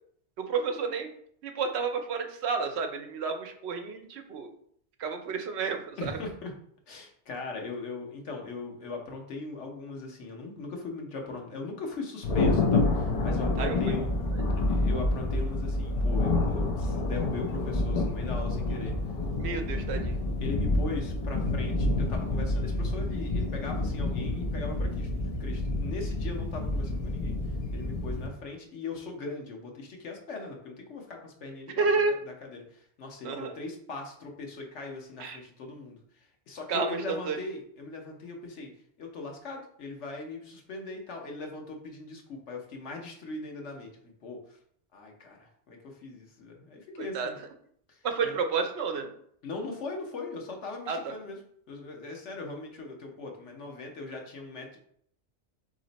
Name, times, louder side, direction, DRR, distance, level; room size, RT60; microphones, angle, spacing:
voice 1, 0.4-1.1 1.4-4.5 5.0-6.2 13.6-13.9 14.3-14.4 19.4-20.2 31.7-32.2 33.2-33.5 35.2-35.4 36.7-37.4 47.0-47.3 48.0-49.1 50.9-51.1, right 4 dB, 70° right, 6 dB, 0.8 m, -30 dB
voice 2, 6.0-6.5 6.9-14.1 14.5-19.0 19.5-19.7 20.4-25.1 25.4-27.4 27.7-31.9 32.5-38.7 39.0-44.6 44.9-47.4 47.9-48.3 49.4-51.4 51.7-54.8, left 3 dB, 85° left, 1 dB, 1.2 m, -39 dB
Thunder, 12.2-28.3, left 2 dB, 45° left, 0.5 m, -28 dB
4.2 x 3.1 x 3.9 m, 0.66 s
omnidirectional pair, 1.2 m